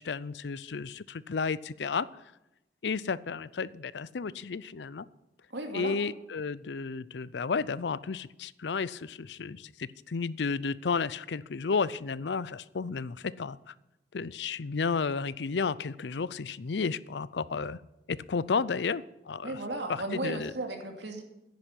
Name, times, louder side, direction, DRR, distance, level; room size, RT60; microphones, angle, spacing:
voice 1, 0.0-2.1 2.8-5.0 5.7-13.7 14.1-17.8 18.1-19.6 19.9-20.5, left 5 dB, 80° left, 19 dB, 0.5 m, -32 dB
voice 2, 5.5-6.0 19.4-21.2, right 2 dB, 85° right, 3 dB, 2.6 m, -35 dB
10.5 x 10.0 x 9.9 m, 0.92 s
head